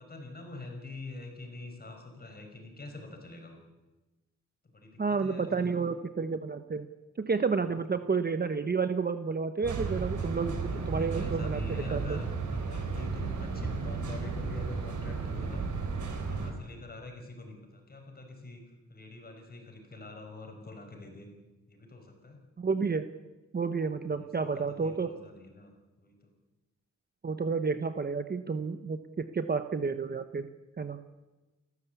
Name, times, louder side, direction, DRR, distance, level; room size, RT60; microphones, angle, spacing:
voice 1, 0.0-3.6 4.7-5.7 7.7-7.8 10.7-15.6 16.1-18.6 18.9-21.3 21.7-22.4 24.1-25.7 26.0-26.1, left 2 dB, 30° left, 3 dB, 5.2 m, -45 dB
voice 2, 5.0-6.9 7.2-12.2 22.6-23.0 23.5-25.1 27.2-30.5 30.8-31.0, right 5 dB, 35° right, 10 dB, 1.0 m, -31 dB
sound 1, 9.6-16.5, right 4 dB, 85° right, 3.7 m, -34 dB
29.5 x 13.5 x 8.3 m, 1.1 s
wide cardioid pair, 130°, 29 cm